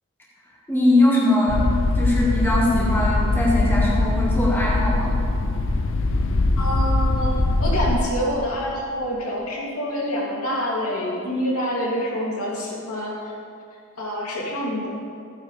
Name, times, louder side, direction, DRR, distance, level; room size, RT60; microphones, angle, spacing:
voice 1, 0.7-1.6 2.0-5.2, left 1 dB, 10° left, -6 dB, 1.7 m, -21 dB
sound 1, 1.5-8.0, left 2 dB, 60° left, 0.5 m, -22 dB
voice 2, 6.6-13.3 14.0-14.9, equal, 80° left, -4 dB, 2.7 m, -26 dB
15.0 x 9.9 x 3.3 m, 2.4 s
head